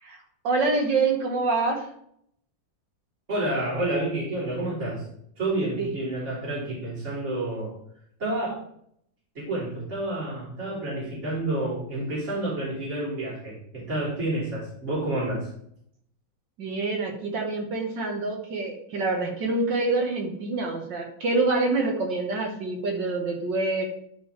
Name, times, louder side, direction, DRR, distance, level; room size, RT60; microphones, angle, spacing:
voice 1, 0.4-1.9 5.8-5.9 16.6-23.8, right 3 dB, 70° right, 2 dB, 2.0 m, -26 dB
voice 2, 3.3-5.0 5.4-7.7 8.2-8.6 9.4-15.5, right 1 dB, 35° right, -8 dB, 3.7 m, -29 dB
11.5 x 5.0 x 3.3 m, 0.69 s
omnidirectional pair, 2.1 m